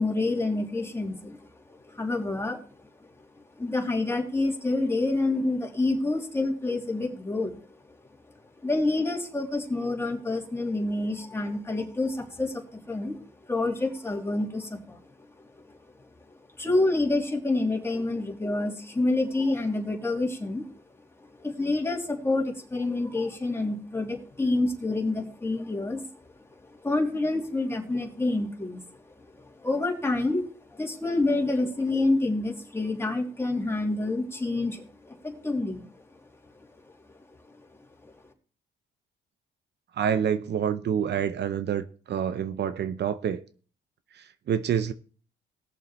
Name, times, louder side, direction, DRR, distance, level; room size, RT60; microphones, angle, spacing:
voice 1, 0.0-2.9 3.2-7.8 8.6-13.2 13.5-20.8 21.2-26.0 26.5-36.0 36.4-37.0 37.4-37.7 38.0-38.2, left 2 dB, 15° left, 2.9 m, -28 dB
voice 2, 40.0-43.4 44.2-44.9, right 8 dB, 60° right, 0.7 m, -27 dB
19.5 x 7.0 x 3.1 m
cardioid pair, 90°, 20 cm